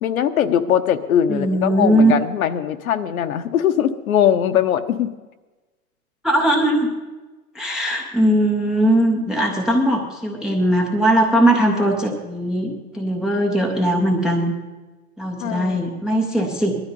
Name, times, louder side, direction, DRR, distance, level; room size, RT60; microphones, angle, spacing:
voice 1, 0.0-5.1 15.4-15.8, left 9 dB, 65° left, 9 dB, 1.1 m, -20 dB
voice 2, 1.3-2.1 6.2-6.9 7.5-14.5 15.2-16.8, right 1 dB, ahead, 0 dB, 0.5 m, -19 dB
18.5 x 12.5 x 5.4 m, 1.2 s
hypercardioid pair, 150°, 45 cm